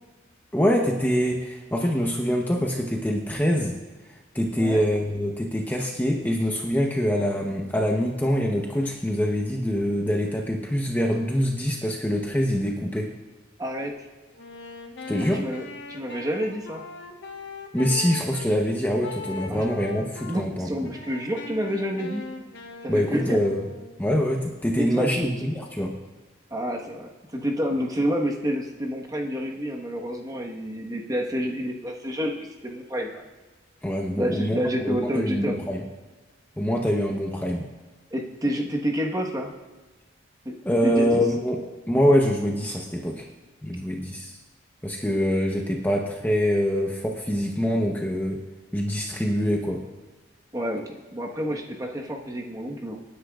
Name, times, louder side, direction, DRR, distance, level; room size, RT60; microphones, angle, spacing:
voice 1, 0.5-3.7 4.3-13.1 15.1-15.4 17.7-20.9 22.9-23.7 24.0-25.9 33.8-34.6 34.8-35.8 36.6-37.7 40.6-41.6 41.9-43.3 43.6-44.4 44.8-48.4 48.7-49.8, equal, 10° left, 0 dB, 0.8 m, -24 dB
voice 2, 4.5-4.9 13.6-13.9 15.3-16.8 19.5-19.6 20.3-22.2 22.8-23.4 24.8-25.3 26.5-33.2 34.2-35.6 38.1-39.5 40.4-41.2 50.5-53.0, equal, 20° right, 0 dB, 1.3 m, -29 dB
Wind instrument woodwind instrument, 14.3-18.5 19.0-20.4 20.8-24.0, left 3 dB, 70° left, 1.3 m, -40 dB
26.0 x 10.0 x 2.4 m, 1.3 s
head